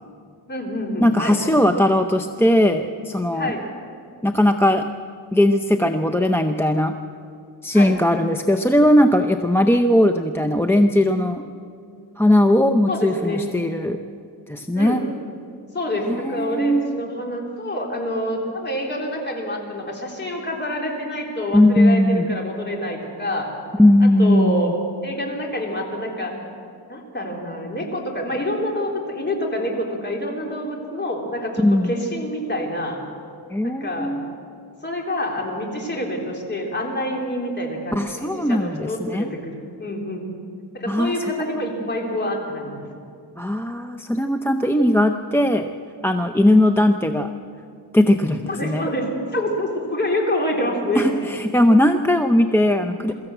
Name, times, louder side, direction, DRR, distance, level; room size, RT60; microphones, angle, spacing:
voice 1, 0.5-1.4 3.3-3.7 7.7-7.9 12.9-13.4 14.8-15.0 15.7-23.5 24.0-24.7 25.0-26.3 26.9-33.0 33.6-34.1 34.8-40.3 40.7-42.8 48.5-51.1, left 1 dB, 25° left, 0 dB, 3.7 m, -27 dB
voice 2, 1.0-3.5 4.2-4.9 5.3-6.9 7.6-11.4 12.2-14.0 14.5-15.0 16.1-16.9 21.5-22.4 23.8-24.7 31.6-32.0 33.5-34.2 38.0-39.3 40.9-41.2 43.4-45.7 46.0-47.3 47.9-48.9 51.0-53.1, left 1 dB, 5° left, 6 dB, 0.6 m, -18 dB
23.0 x 14.0 x 7.9 m, 2.4 s
cardioid pair, 120°, 42 cm